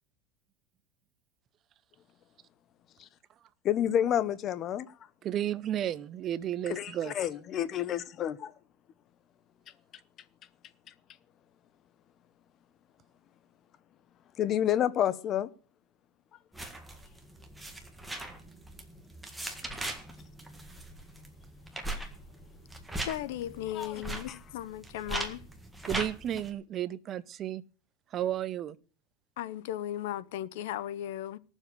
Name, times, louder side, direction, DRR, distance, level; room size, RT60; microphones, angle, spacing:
voice 1, 3.6-4.9 6.7-8.5 14.4-15.5 22.0-22.1 23.7-23.9 24.3-24.4, left 10 dB, 30° left, 0.8 m, -29 dB
voice 2, 5.2-7.1 25.9-27.6 28.1-28.8, right 11 dB, 30° right, 0.7 m, -33 dB
sound 1, 16.5-26.5, right 1 dB, 5° right, 1.8 m, -40 dB
voice 3, 23.0-25.5 29.4-31.4, left 12 dB, 75° left, 0.9 m, -36 dB
18.0 x 7.3 x 6.7 m
supercardioid pair, 150°, 0 cm